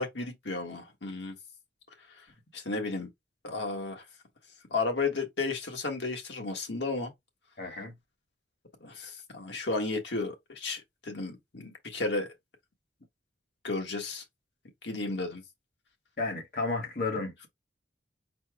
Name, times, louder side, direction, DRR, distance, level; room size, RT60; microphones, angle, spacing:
voice 1, 0.0-1.3 2.5-3.1 3.4-4.0 4.7-7.1 8.8-12.3 13.6-14.2 14.8-15.4, left 3 dB, 75° left, 1.4 m, -33 dB
voice 2, 7.6-7.9 16.2-17.5, left 3 dB, 50° left, 1.3 m, -32 dB
4.3 x 2.2 x 4.7 m
head